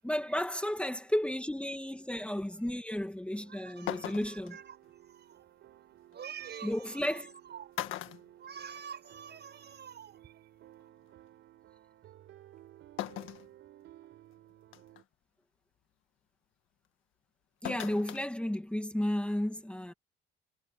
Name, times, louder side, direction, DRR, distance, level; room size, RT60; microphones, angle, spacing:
voice 1, 0.0-4.6 6.6-7.3 17.6-19.9, left 1 dB, 5° left, 2.2 m, -33 dB
sound 1, 3.3-3.4 3.9-4.5 6.1-6.2 7.2-7.4 7.7-9.1 9.5-9.6 10.8-10.9 13.0-13.5 14.0-14.1 14.7-15.0 17.6-18.3 18.6-18.7, left 13 dB, 85° left, 1.7 m, -39 dB
sound 2, 3.3-15.0, right 13 dB, 80° right, 4.0 m, -57 dB
voice 2, 3.5-4.8 5.4-5.5 6.1-7.7 8.4-10.5, right 8 dB, 60° right, 6.8 m, -47 dB
cardioid pair, 90°, 20 cm